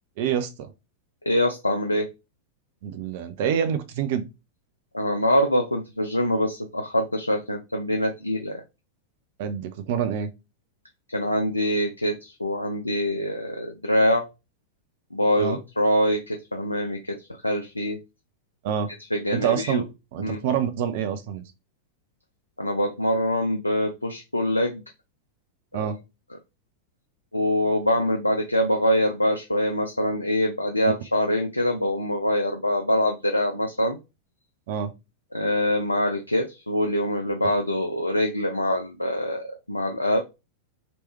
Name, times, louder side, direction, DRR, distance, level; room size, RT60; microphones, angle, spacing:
voice 1, 0.2-0.7 2.8-4.2 9.4-10.3 15.4-15.6 18.6-18.9 19.3-21.4 25.7-26.0 30.8-30.9 34.7-34.9, right 8 dB, 50° right, 0.6 m, -27 dB
voice 2, 1.3-2.1 4.9-8.6 11.1-14.3 15.1-17.2 17.4-18.0 19.1-19.8 20.2-20.4 22.6-24.8 25.7-25.8 27.3-34.0 35.3-40.2, left 1 dB, 85° left, 0.5 m, -24 dB
3.1 x 3.0 x 3.0 m
figure-of-eight pair, 90°, 0 cm